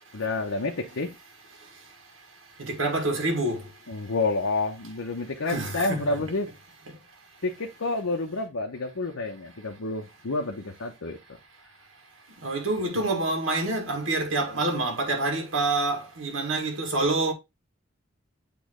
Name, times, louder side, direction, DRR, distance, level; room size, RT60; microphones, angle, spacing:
voice 1, 0.1-1.1 3.9-6.5 7.4-11.2, left 3 dB, 90° left, 0.9 m, -29 dB
voice 2, 2.6-3.6 5.5-6.0 12.4-17.3, right 2 dB, 80° right, 1.9 m, -27 dB
8.4 x 3.1 x 3.7 m
head